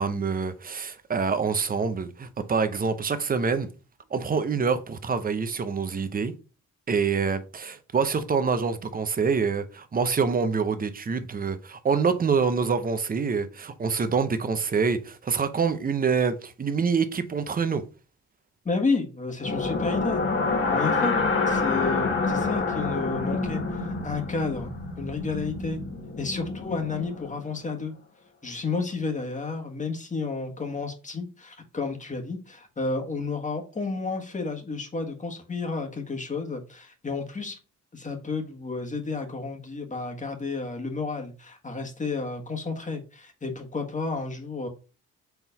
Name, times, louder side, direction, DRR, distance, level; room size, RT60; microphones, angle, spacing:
voice 1, 0.0-3.7 4.1-6.3 6.9-17.8, right 5 dB, 30° right, 0.8 m, -26 dB
voice 2, 18.6-20.2 20.7-21.1 21.5-25.8 26.2-27.9 28.4-37.6 37.9-44.7, left 4 dB, 25° left, 1.6 m, -31 dB
sound 1, 19.4-27.4, left 3 dB, 40° left, 1.4 m, -27 dB
4.5 x 3.8 x 5.4 m
cardioid pair, 90°, 30 cm